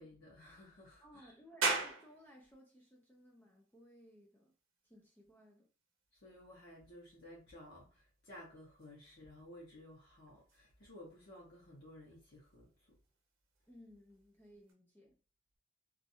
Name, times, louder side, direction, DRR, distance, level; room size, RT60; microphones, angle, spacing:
voice 1, 0.0-1.3 6.1-13.0, left 1 dB, 55° left, 0.8 m, -56 dB
voice 2, 1.0-4.6 4.8-5.7 13.7-15.2, equal, 10° left, 0.4 m, -60 dB
sound 1, 1.6-14.7, right 4 dB, 85° right, 0.7 m, -46 dB
2.5 x 2.4 x 2.7 m
head